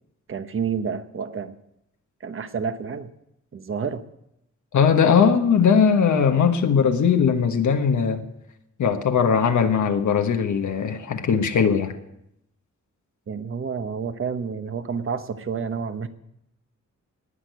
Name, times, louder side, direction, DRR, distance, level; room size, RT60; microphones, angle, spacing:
voice 1, 0.3-1.5 2.2-3.1 3.5-4.0 5.2-5.3 13.3-16.1, right 6 dB, 45° right, 10 dB, 1.1 m, -29 dB
voice 2, 4.7-8.3 8.8-11.9, left 6 dB, 75° left, 5 dB, 1.4 m, -19 dB
19.0 x 6.7 x 9.4 m, 0.81 s
wide cardioid pair, 150°, 30 cm